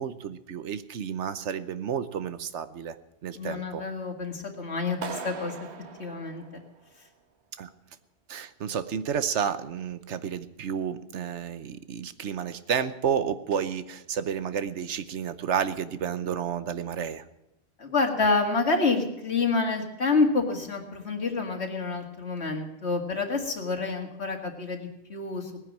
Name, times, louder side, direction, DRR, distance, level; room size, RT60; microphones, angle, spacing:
voice 1, 0.0-3.0 3.2-3.8 7.6-7.7 8.3-17.2, right 7 dB, 90° right, 12 dB, 1.2 m, -31 dB
voice 2, 3.3-5.6 6.0-6.6 17.8-25.6, left 3 dB, 70° left, 3 dB, 2.3 m, -28 dB
Clapping, 5.0-7.1, right 5 dB, 70° right, 1.3 m, -40 dB
18.5 x 10.0 x 7.4 m, 0.88 s
omnidirectional pair, 1.2 m